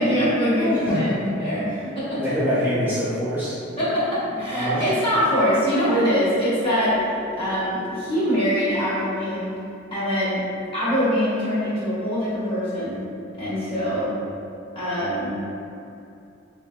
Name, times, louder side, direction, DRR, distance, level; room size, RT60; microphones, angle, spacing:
voice 1, 0.0-1.6 1.9-2.3 3.8-7.0 7.4-9.5 9.9-10.4 10.7-13.0 13.4-14.1 14.7-15.4, equal, 30° left, -10 dB, 1.1 m, -23 dB
voice 2, 0.5-1.3 2.1-3.5 4.5-4.8 5.9-6.0, equal, 10° right, -12 dB, 0.9 m, -24 dB
sound 1, 3.6-9.2, left 1 dB, 70° left, 1.3 m, -38 dB
3.4 x 3.3 x 2.2 m, 2.6 s
head